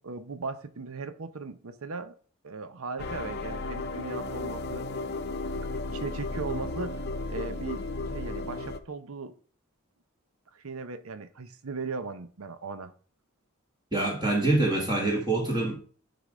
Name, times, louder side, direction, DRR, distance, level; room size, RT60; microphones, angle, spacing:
voice 1, 0.0-2.2 2.4-4.9 5.5-7.0 7.3-9.3 10.5-12.9, right 4 dB, 80° right, 0.7 m, -38 dB
sound 1, 3.0-8.8, left 2 dB, 50° left, 0.7 m, -34 dB
voice 2, 13.9-15.8, right 2 dB, 20° right, 1.7 m, -25 dB
11.5 x 4.0 x 4.9 m
head